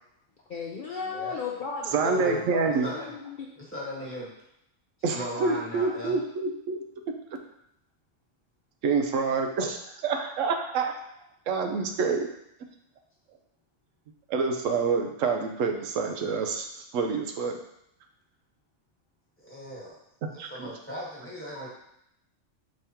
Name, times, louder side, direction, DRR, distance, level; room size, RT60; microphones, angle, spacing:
voice 1, 0.5-3.5, left 4 dB, 55° left, -3 dB, 0.6 m, -34 dB
voice 2, 1.0-1.4 2.0-2.4 2.8-3.1 3.7-4.3 5.1-6.2 19.4-20.0 20.3-21.7, equal, 10° left, -6 dB, 1.2 m, -37 dB
voice 3, 1.9-2.9 5.0-6.8 8.8-10.9 11.5-12.3 14.3-17.6 20.4-20.7, right 4 dB, 85° right, 4 dB, 1.0 m, -27 dB
5.3 x 3.5 x 2.9 m, 0.78 s
omnidirectional pair, 1.3 m